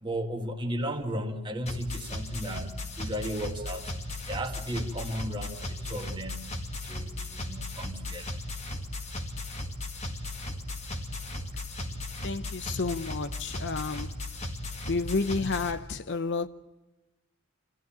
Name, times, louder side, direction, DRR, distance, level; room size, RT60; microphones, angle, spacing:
voice 1, 0.0-3.9 4.3-6.5 6.8-8.3, equal, 20° right, 2.0 m, -35 dB
sound 1, 1.7-15.7, left 1 dB, 30° left, 2.0 m, -36 dB
voice 2, 12.2-14.2 14.9-16.5, left 4 dB, 55° left, 0.8 m, -31 dB
27.5 x 15.5 x 8.8 m
head